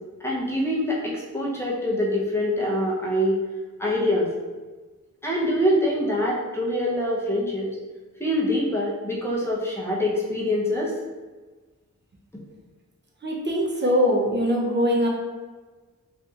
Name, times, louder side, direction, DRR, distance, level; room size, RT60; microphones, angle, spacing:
voice 1, 0.2-3.4 3.8-4.3 5.2-7.7 8.2-10.9, left 1 dB, 10° left, -4 dB, 0.7 m, -24 dB
voice 2, 13.2-15.1, equal, 35° right, -2 dB, 0.6 m, -22 dB
2.8 x 2.5 x 2.4 m, 1.3 s
wide cardioid pair, 60°, 31 cm